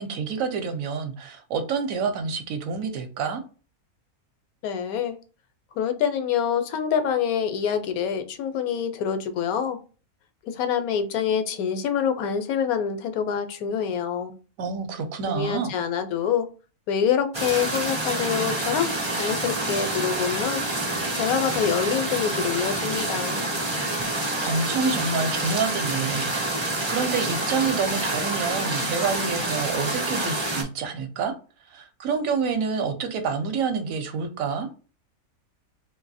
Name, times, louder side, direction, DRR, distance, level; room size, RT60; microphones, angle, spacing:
voice 1, 0.0-3.4 14.6-15.8 24.4-31.3 31.7-34.7, right 5 dB, 70° right, 1.0 m, -28 dB
voice 2, 4.6-5.2 5.8-9.8 10.4-14.3 15.3-16.5 16.9-20.6 21.2-23.4, left 8 dB, 75° left, 1.0 m, -26 dB
sound 1, 17.3-30.6, right 2 dB, 35° right, 0.4 m, -27 dB
2.6 x 2.6 x 4.0 m
omnidirectional pair, 1.5 m